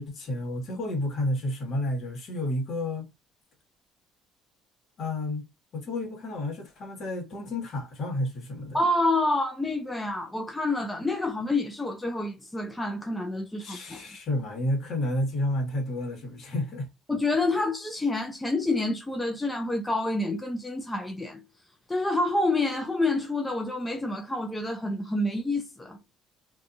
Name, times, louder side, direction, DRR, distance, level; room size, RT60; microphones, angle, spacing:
voice 1, 0.0-3.1 5.0-5.5 5.7-8.8 13.6-16.9, left 1 dB, 50° left, 1.3 m, -31 dB
voice 2, 8.7-14.0 17.1-21.4 21.9-26.0, left 2 dB, 10° left, 0.4 m, -28 dB
2.6 x 2.5 x 2.4 m
cardioid pair, 125°, 0 cm